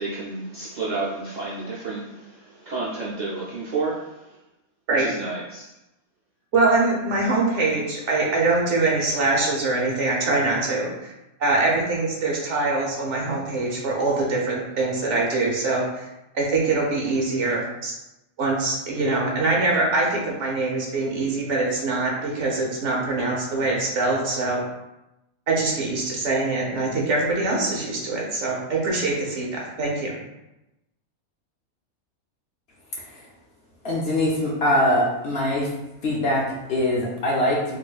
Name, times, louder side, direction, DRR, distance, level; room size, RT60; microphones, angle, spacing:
voice 1, 0.0-4.4 5.0-5.7, right 3 dB, 75° right, -6 dB, 0.4 m, -31 dB
voice 2, 6.5-11.1 11.4-16.1 16.3-17.9 18.4-24.6 25.5-30.2, right 3 dB, 60° right, -2 dB, 1.1 m, -23 dB
voice 3, 33.8-35.7 36.0-37.8, left 1 dB, 55° left, -4 dB, 0.8 m, -22 dB
4.2 x 3.1 x 2.3 m, 0.94 s
omnidirectional pair, 1.5 m